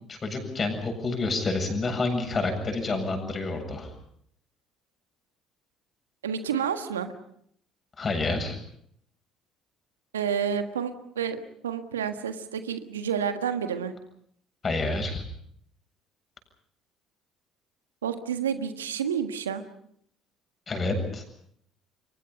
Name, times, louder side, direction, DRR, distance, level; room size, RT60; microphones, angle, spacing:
voice 1, 0.1-3.9 8.0-8.6 14.6-15.2 20.7-21.2, left 3 dB, 35° left, 6 dB, 7.8 m, -28 dB
voice 2, 6.2-7.1 10.1-13.9 18.0-19.6, right 7 dB, 90° right, 9 dB, 1.5 m, -29 dB
30.0 x 24.0 x 5.5 m, 0.68 s
hypercardioid pair, 60°, 0 cm